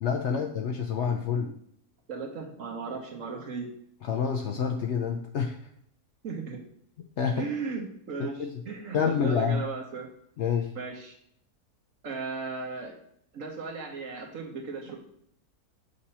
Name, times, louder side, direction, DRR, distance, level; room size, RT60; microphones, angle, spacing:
voice 1, 0.0-1.5 4.0-5.6 7.2-7.5 8.2-8.5 8.9-9.6 10.4-10.7, left 6 dB, 65° left, 4 dB, 0.7 m, -27 dB
voice 2, 2.1-3.7 6.2-6.6 7.4-10.1 10.7-11.1 12.0-13.0 13.3-15.0, right 4 dB, 60° right, 1 dB, 1.4 m, -36 dB
6.7 x 2.8 x 5.4 m, 0.68 s
omnidirectional pair, 1.6 m